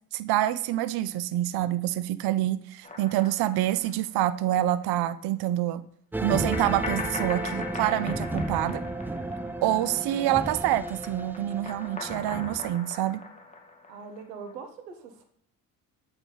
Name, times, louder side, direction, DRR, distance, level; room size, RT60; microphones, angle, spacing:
voice 1, 0.1-5.8 6.2-8.8 9.6-13.2, right 13 dB, 55° right, 14 dB, 0.5 m, -27 dB
sound 1, 2.8-4.5 4.8-4.9 6.5-10.0 10.3-14.5, left 4 dB, 15° left, 1.4 m, -40 dB
sound 2, 6.1-12.7, right 2 dB, 5° right, 0.4 m, -33 dB
voice 2, 12.3-12.6 13.9-15.2, right 5 dB, 90° right, 7 dB, 0.9 m, -43 dB
8.2 x 3.4 x 3.8 m, 0.65 s
hypercardioid pair, 50°, 48 cm